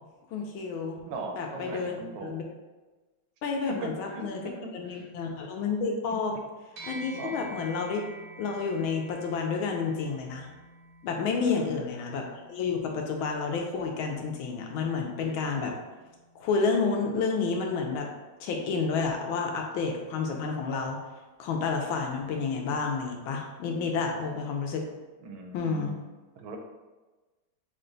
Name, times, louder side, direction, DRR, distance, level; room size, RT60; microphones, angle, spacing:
voice 1, 0.3-1.0 1.4-2.4 3.4-4.4 4.7-6.3 6.9-8.0 8.4-10.5 11.0-15.7 16.3-18.1 18.4-21.0 21.4-24.9 25.5-25.9, left 5 dB, 80° left, 2 dB, 1.4 m, -30 dB
voice 2, 1.1-2.3 3.7-4.3 4.8-5.1 7.1-7.5 11.3-11.8 25.2-26.0 26.4-26.6, right 3 dB, 80° right, 3 dB, 1.4 m, -39 dB
sound 1, 6.8-16.4, right 1 dB, 60° right, 0.9 m, -49 dB
5.9 x 2.2 x 3.8 m, 1.2 s
omnidirectional pair, 2.3 m